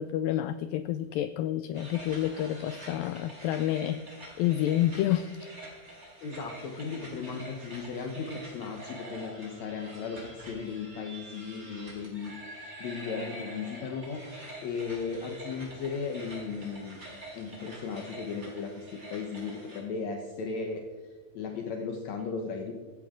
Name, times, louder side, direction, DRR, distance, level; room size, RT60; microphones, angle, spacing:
voice 1, 0.0-4.1 4.4-5.5, left 12 dB, 85° left, 13 dB, 2.0 m, -29 dB
sound 1, 1.7-19.8, right 1 dB, 15° right, 4.8 m, -46 dB
voice 2, 6.2-22.7, left 5 dB, 65° left, 3 dB, 1.9 m, -36 dB
16.5 x 16.0 x 3.8 m, 1.5 s
omnidirectional pair, 4.5 m